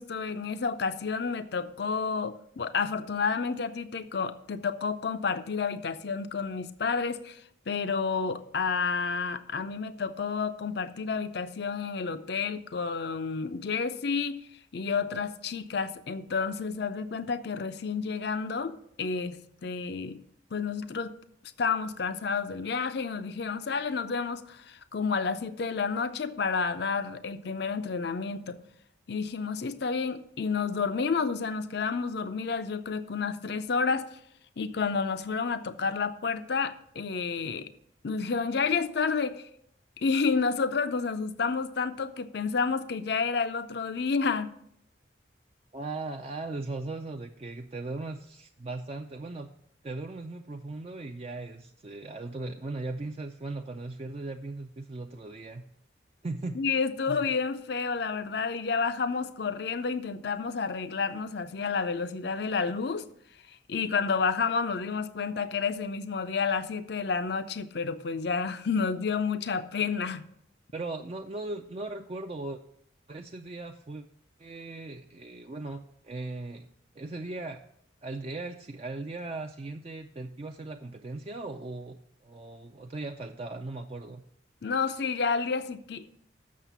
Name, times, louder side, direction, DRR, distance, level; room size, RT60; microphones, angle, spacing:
voice 1, 0.0-7.4 7.7-14.4 14.7-19.4 19.6-20.2 20.5-21.1 21.6-28.6 29.1-34.1 34.6-37.7 38.0-39.4 40.0-44.5 56.6-63.0 63.7-70.2 84.6-86.1, left 5 dB, 55° left, 11 dB, 0.5 m, -30 dB
voice 2, 45.7-49.5 49.8-55.6 56.2-56.6 57.1-57.3 70.7-72.6 73.1-74.0 74.4-76.7 77.0-77.6 78.0-84.2, right 2 dB, 30° right, 4 dB, 0.4 m, -38 dB
7.4 x 6.5 x 6.8 m, 0.70 s
head